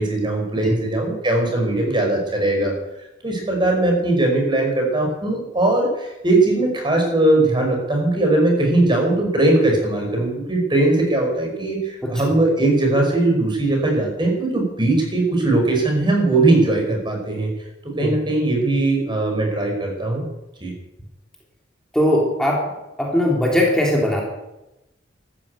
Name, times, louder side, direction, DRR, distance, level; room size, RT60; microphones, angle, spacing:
voice 1, 0.0-2.7 3.2-17.5 17.8-20.3 20.6-20.7, right 2 dB, 25° right, 2 dB, 5.3 m, -19 dB
voice 2, 12.0-12.3 18.0-18.1 21.9-22.7 23.0-24.2, left 1 dB, 5° left, -2 dB, 2.9 m, -20 dB
13.5 x 11.5 x 8.6 m, 0.95 s
head